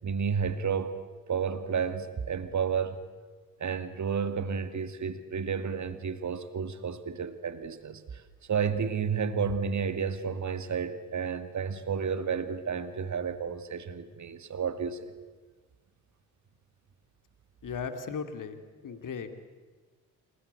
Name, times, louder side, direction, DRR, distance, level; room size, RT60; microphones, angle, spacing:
voice 1, 0.0-1.0 1.3-3.0 3.6-8.2 8.5-15.1, right 6 dB, 40° right, 11 dB, 2.4 m, -31 dB
voice 2, 17.6-19.3, left 6 dB, 40° left, 9 dB, 2.8 m, -37 dB
27.0 x 23.0 x 8.1 m, 1.4 s
figure-of-eight pair, 45°, 46 cm